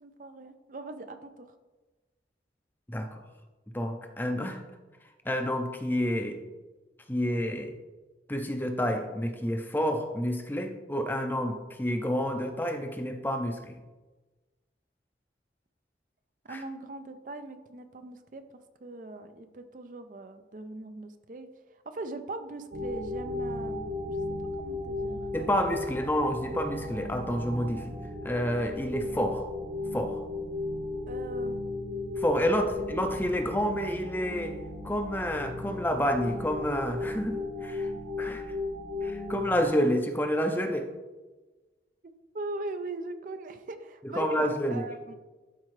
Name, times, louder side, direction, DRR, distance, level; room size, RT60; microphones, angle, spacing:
voice 1, 0.0-1.5 16.4-18.4 18.8-25.2 31.1-31.6 32.5-32.6 38.2-38.3 42.0-45.1, right 2 dB, 45° right, 9 dB, 0.5 m, -41 dB
voice 2, 2.9-3.2 3.7-4.6 5.2-6.4 7.1-7.7 8.3-13.8 16.5-16.6 25.3-27.9 28.2-29.4 29.9-30.2 32.2-34.6 34.8-37.9 38.2-38.5 39.0-40.9 44.1-44.8, equal, 10° left, 5 dB, 0.5 m, -29 dB
sound 1, 22.7-39.6, left 2 dB, 70° right, 0.9 m, -35 dB
11.5 x 4.7 x 3.2 m, 1.2 s
head